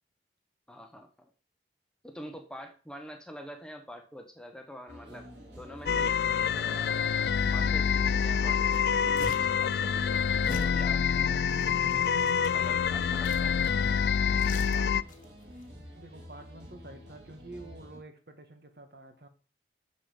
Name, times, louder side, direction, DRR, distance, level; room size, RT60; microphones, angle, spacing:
voice 1, 0.7-1.3 2.0-6.2 6.5-7.1 7.5-11.4 12.5-13.6, equal, 5° left, 5 dB, 0.9 m, -46 dB
sound 1, 4.9-18.0, equal, 75° right, 3.0 m, -48 dB
sound 2, 5.9-15.0, left 7 dB, 60° left, 0.3 m, -27 dB
sound 3, 8.3-8.4 8.7-9.6 10.4-10.8 11.5-12.6 13.2-13.8 14.1-15.2 15.5-15.7, left 2 dB, 45° left, 1.2 m, -43 dB
voice 2, 14.5-15.0 15.9-19.3, right 2 dB, 55° right, 7 dB, 1.5 m, -48 dB
6.9 x 6.9 x 5.6 m, 0.37 s
head